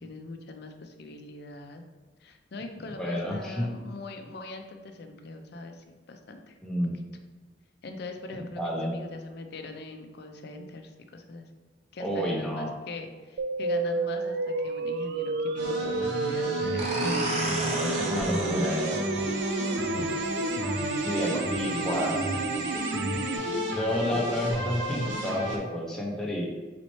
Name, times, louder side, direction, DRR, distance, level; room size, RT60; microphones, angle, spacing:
voice 1, 0.0-1.9 2.2-6.6 7.8-11.5 11.9-17.1 19.8-20.2 21.6-22.5, left 2 dB, 65° left, 5 dB, 0.5 m, -42 dB
voice 2, 3.0-3.7 6.6-6.9 8.6-8.9 12.0-12.7 17.0-19.0 21.0-22.3 23.7-26.5, equal, 5° left, -4 dB, 0.6 m, -30 dB
sound 1, 13.4-23.4, right 4 dB, 65° right, 0.3 m, -31 dB
sound 2, 15.6-25.6, equal, 80° right, 0.8 m, -32 dB
sound 3, 16.8-22.2, right 1 dB, 35° right, 0.7 m, -36 dB
4.1 x 4.1 x 3.1 m, 1.3 s
head